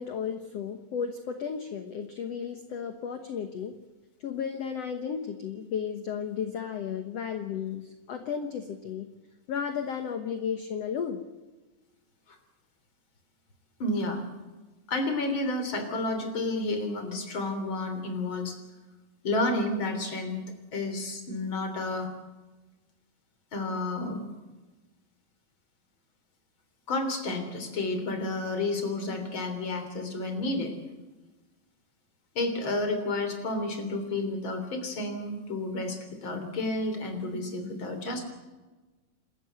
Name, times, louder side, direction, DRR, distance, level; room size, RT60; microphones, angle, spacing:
voice 1, 0.0-3.8 4.2-9.1 9.5-11.2, left 7 dB, 60° left, 7 dB, 1.7 m, -34 dB
voice 2, 13.8-14.2 14.9-18.6 19.2-20.4 20.7-22.1 23.5-24.2 26.9-30.7 32.4-38.2, left 2 dB, 35° left, 6 dB, 3.8 m, -31 dB
28.0 x 13.5 x 7.8 m, 1.2 s
omnidirectional pair, 4.3 m